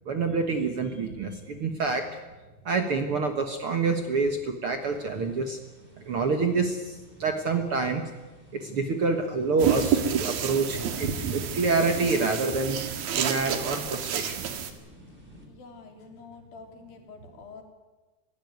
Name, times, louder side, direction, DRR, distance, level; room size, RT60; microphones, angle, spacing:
voice 1, 0.1-2.2 2.7-5.6 6.0-8.1 8.5-12.8 13.1-14.4, right 4 dB, 50° right, 6 dB, 1.7 m, -27 dB
sound 1, 4.8-15.5, equal, 15° right, 3.7 m, -47 dB
sound 2, 9.6-14.7, right 8 dB, 75° right, 3.5 m, -29 dB
voice 2, 15.5-17.6, left 5 dB, 75° left, 3 dB, 5.0 m, -47 dB
26.0 x 16.0 x 9.4 m, 1.2 s
omnidirectional pair, 4.1 m